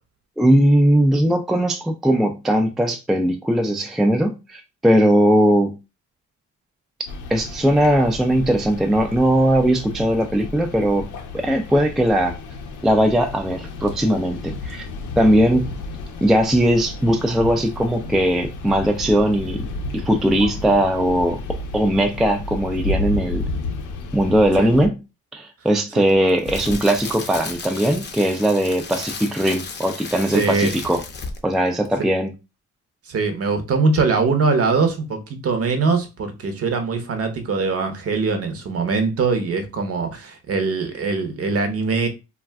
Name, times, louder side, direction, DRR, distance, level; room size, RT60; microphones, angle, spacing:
voice 1, 0.4-5.8 7.3-11.1 11.3-12.4 12.8-14.8 15.2-15.7 16.2-19.7 19.9-23.5 24.1-24.9 25.3-31.0 31.4-32.3, right 1 dB, ahead, 0.3 m, -19 dB
sound 1, 7.1-24.9, left 2 dB, 85° left, 0.6 m, -32 dB
Crackle, 26.1-31.6 31.8-32.0, left 4 dB, 35° left, 0.6 m, -34 dB
voice 2, 30.3-30.7 33.1-42.1, right 4 dB, 50° right, 0.8 m, -22 dB
2.3 x 2.3 x 3.4 m
cardioid pair, 90°, 30 cm